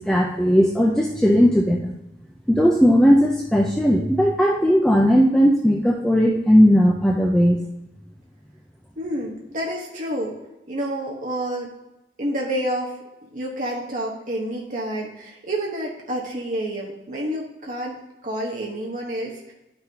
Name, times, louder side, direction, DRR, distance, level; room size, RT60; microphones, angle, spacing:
voice 1, 0.0-1.9 2.5-7.6, equal, 5° left, -1 dB, 0.4 m, -17 dB
voice 2, 9.0-10.4 10.7-11.7 12.2-13.0 13.3-19.5, right 1 dB, 45° right, -3 dB, 1.1 m, -29 dB
11.5 x 5.9 x 2.8 m, 0.96 s
head